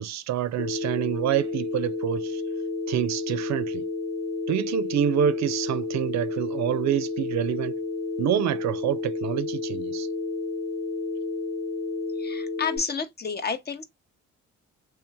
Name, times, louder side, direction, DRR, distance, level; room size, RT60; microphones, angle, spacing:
voice 1, 0.0-2.4 2.9-3.9 4.5-7.8 8.2-10.1, right 11 dB, 65° right, 0.5 m, -27 dB
Telephone, 0.6-12.8, left 3 dB, 65° left, 1.4 m, -31 dB
voice 2, 12.2-13.8, left 5 dB, 35° left, 0.8 m, -30 dB
3.2 x 3.0 x 3.4 m
cardioid pair, 90°, 30 cm